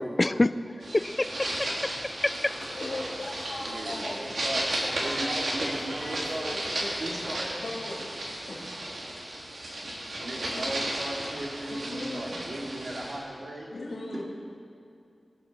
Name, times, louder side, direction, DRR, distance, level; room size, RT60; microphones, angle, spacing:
voice 1, 0.0-2.3, left 2 dB, 30° left, 14 dB, 0.5 m, -27 dB
sound 1, 0.8-13.2, right 1 dB, 80° right, 3.4 m, -34 dB
voice 2, 2.6-4.1 4.8-5.4 5.8-6.9 7.3-8.1 8.5-8.7 11.7-12.2 13.7-14.2, left 2 dB, 80° left, -9 dB, 2.9 m, -39 dB
voice 3, 3.6-4.7 5.0-6.6 7.0-7.6 9.8-9.9 10.2-13.7 14.1-14.2, right 1 dB, 60° right, -2 dB, 3.0 m, -36 dB
23.5 x 8.1 x 7.0 m, 2.5 s
wide cardioid pair, 75°, 0 cm